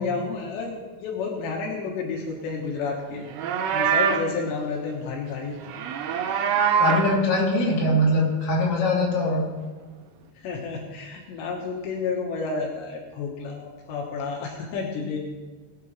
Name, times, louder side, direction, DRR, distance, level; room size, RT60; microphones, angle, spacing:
voice 1, 0.0-5.6 10.3-15.2, left 4 dB, 80° left, -1 dB, 3.4 m, -31 dB
Livestock farm animals working animals, 3.2-4.3 5.6-7.2, right 7 dB, 80° right, 2.9 m, -24 dB
voice 2, 6.8-9.5, left 1 dB, 45° left, -6 dB, 3.8 m, -22 dB
21.5 x 8.4 x 3.2 m, 1.3 s
omnidirectional pair, 5.0 m